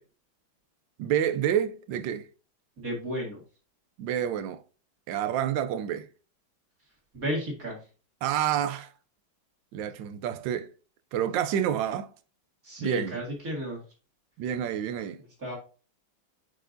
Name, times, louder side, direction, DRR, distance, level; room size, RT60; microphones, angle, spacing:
voice 1, 1.0-2.3 4.0-4.6 5.1-6.1 8.2-8.9 9.7-10.7 11.1-12.1 12.8-13.2 14.4-15.2, right 9 dB, 75° right, 1.2 m, -28 dB
voice 2, 2.8-3.4 7.1-7.8 12.6-13.8 15.4-15.6, equal, 45° right, 2.4 m, -33 dB
9.2 x 4.4 x 2.6 m
omnidirectional pair, 2.2 m